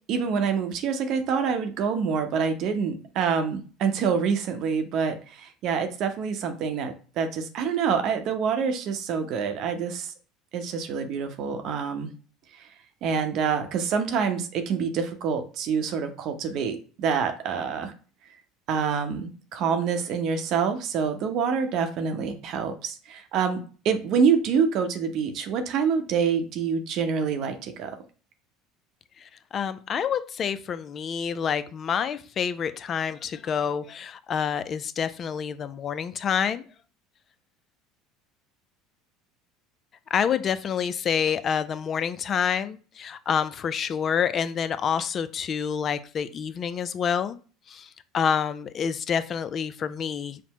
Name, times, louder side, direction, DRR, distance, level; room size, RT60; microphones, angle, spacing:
voice 1, 0.1-10.1 10.5-12.1 12.6-12.7 13.0-17.9 18.7-23.6 23.8-27.9, right 6 dB, 60° right, 7 dB, 0.7 m, -26 dB
voice 2, 29.5-36.6 40.1-47.4 47.7-47.9 48.1-50.4, left 7 dB, 40° left, 14 dB, 0.3 m, -27 dB
5.7 x 2.0 x 3.0 m, 0.39 s
hypercardioid pair, 80°, 0 cm